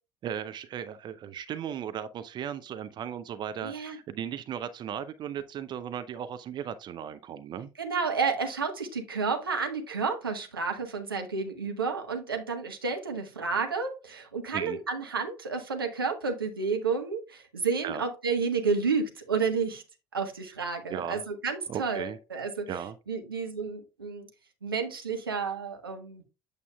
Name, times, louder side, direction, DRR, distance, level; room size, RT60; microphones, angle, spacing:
voice 1, 0.2-7.7 14.5-14.8 17.8-18.0 20.9-21.2 21.7-22.2 22.7-23.0, right 9 dB, 40° right, 0.5 m, -36 dB
voice 2, 3.6-4.0 7.8-19.8 20.1-22.7 23.1-24.3 24.6-26.2, right 5 dB, 80° right, 1.0 m, -31 dB
8.4 x 6.8 x 2.3 m
figure-of-eight pair, 60°, 12 cm